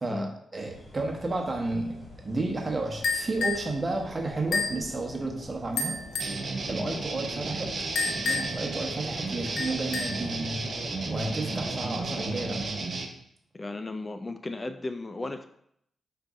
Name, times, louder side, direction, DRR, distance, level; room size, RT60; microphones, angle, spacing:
voice 1, 0.0-6.0 6.7-7.7 8.0-10.7 11.1-12.6, right 2 dB, 35° right, 2 dB, 0.9 m, -32 dB
sound 1, 0.7-12.8, left 1 dB, 60° left, 1.5 m, -44 dB
sound 2, 3.0-3.7 4.5-4.8 5.8-6.4 8.0-8.7 9.6-10.3, left 3 dB, 85° left, 0.6 m, -30 dB
sound 3, 6.2-13.1, right 3 dB, 60° right, 0.6 m, -33 dB
voice 2, 13.5-15.5, left 2 dB, 30° left, 8 dB, 0.3 m, -35 dB
5.1 x 2.6 x 3.5 m, 0.71 s
supercardioid pair, 50°, 0 cm